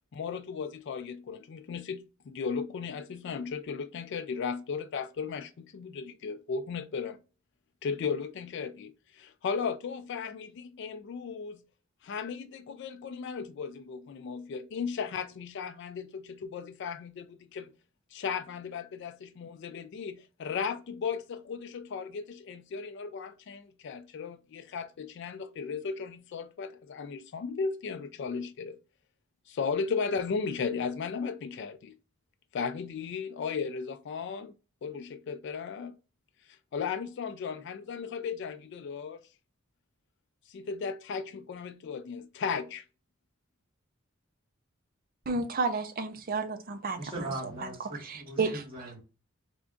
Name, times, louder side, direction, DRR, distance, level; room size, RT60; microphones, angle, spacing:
voice 1, 0.1-7.2 7.8-11.6 12.0-17.7 18.1-28.8 29.5-32.0 32.5-34.5 34.8-35.9 36.7-39.2 40.5-42.8, left 5 dB, 60° left, 0.3 m, -36 dB
voice 2, 45.3-47.0 48.0-48.6, right 4 dB, 45° right, 0.6 m, -31 dB
voice 3, 47.0-49.0, right 2 dB, 25° right, 1.4 m, -39 dB
3.4 x 2.5 x 3.6 m
head